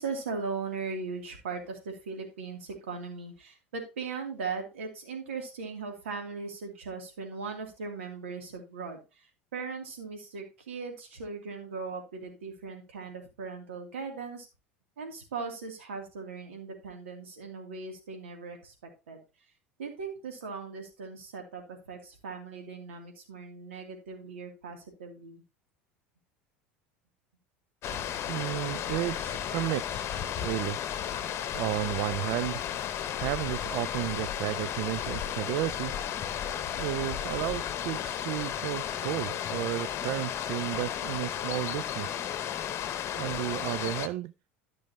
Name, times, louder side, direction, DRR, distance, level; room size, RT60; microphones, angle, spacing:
voice 1, 0.0-9.3 9.5-14.5 15.0-18.7 19.1-19.2 19.8-25.4, right 4 dB, 80° right, 2 dB, 2.8 m, -39 dB
sound 1, 27.8-44.1, left 10 dB, 40° left, 1.0 m, -34 dB
voice 2, 28.3-30.8 31.5-32.6 33.2-35.9 36.8-42.2 43.2-44.3, right 17 dB, 60° right, 16 dB, 0.4 m, -33 dB
13.5 x 6.2 x 2.9 m, 0.28 s
hypercardioid pair, 75°, 7 cm